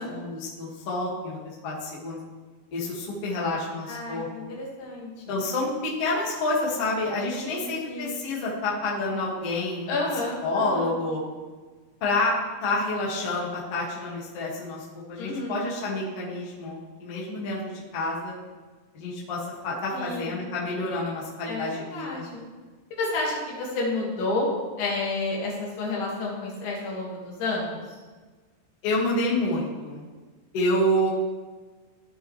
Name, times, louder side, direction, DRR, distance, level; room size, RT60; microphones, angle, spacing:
voice 1, 0.1-1.4 1.6-2.2 2.7-4.3 5.3-9.9 10.4-11.2 12.0-12.3 12.6-18.4 18.9-22.2 28.8-30.0 30.5-31.1, left 2 dB, 50° left, -5 dB, 2.0 m, -28 dB
voice 2, 3.9-4.2 4.5-5.4 7.3-8.2 9.9-10.9 15.2-15.6 19.9-20.5 21.5-22.4 22.9-24.5 24.8-28.0, left 2 dB, 75° left, -3 dB, 4.1 m, -31 dB
14.5 x 6.1 x 3.2 m, 1.3 s
omnidirectional pair, 5.5 m